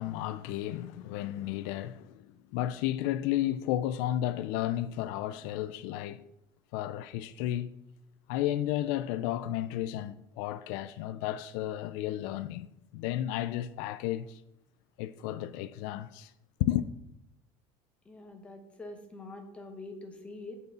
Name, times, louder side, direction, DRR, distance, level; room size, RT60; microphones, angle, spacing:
voice 1, 0.0-6.2 6.7-7.7 8.3-12.7 12.9-14.4 15.0-16.3 16.6-16.9, left 13 dB, 75° left, 0.4 m, -33 dB
voice 2, 18.0-20.6, left 2 dB, 10° left, 1.0 m, -45 dB
8.0 x 4.7 x 6.7 m
cardioid pair, 175°, 10 cm